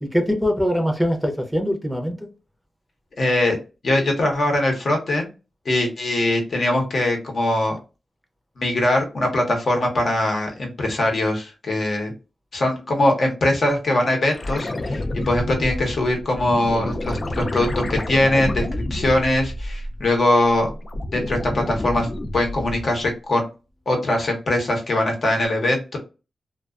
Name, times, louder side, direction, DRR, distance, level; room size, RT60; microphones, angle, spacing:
voice 1, 0.1-2.2, equal, ahead, 0.6 m, -22 dB
voice 2, 3.2-3.6 3.8-5.3 5.6-7.8 8.6-12.1 12.5-20.7 21.1-22.1 22.3-23.5 23.9-26.0, left 1 dB, 60° left, 0.9 m, -21 dB
sound 1, 14.3-20.1 20.5-23.0 25.4-25.5, left 1 dB, 40° left, 0.3 m, -29 dB
2.4 x 2.3 x 2.3 m
wide cardioid pair, 90°, 0 cm